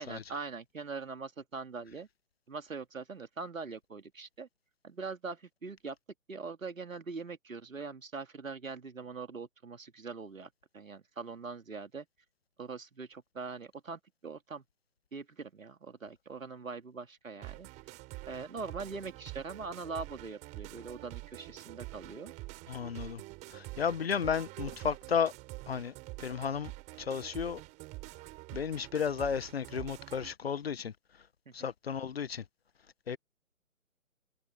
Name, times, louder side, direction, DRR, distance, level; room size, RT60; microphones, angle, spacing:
voice 1, 0.0-2.1 2.5-4.5 4.8-6.0 6.3-10.5 10.7-12.1 12.6-14.6 15.1-17.7 18.2-22.3 31.5-31.7, right 4 dB, 70° right, 2.7 m, -42 dB
sound 1, 17.4-30.3, right 22 dB, 15° right, 5.5 m, -46 dB
voice 2, 22.7-23.2 23.5-25.3 25.7-25.9 26.2-26.7 27.0-27.6 28.5-30.9 31.5-32.4 33.1-33.2, left 7 dB, 45° left, 1.1 m, -33 dB
figure-of-eight pair, 145°, 42 cm